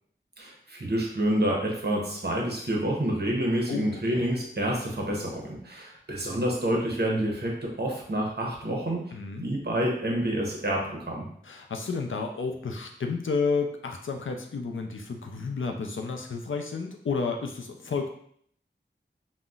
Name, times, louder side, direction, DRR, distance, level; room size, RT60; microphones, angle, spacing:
voice 1, 0.4-9.1 9.4-11.3, right 1 dB, 55° right, -1 dB, 0.8 m, -28 dB
voice 2, 3.7-4.2 9.1-9.4 11.4-18.1, left 4 dB, 80° left, 3 dB, 0.4 m, -31 dB
3.8 x 2.0 x 2.4 m, 0.65 s
wide cardioid pair, 45°, 20 cm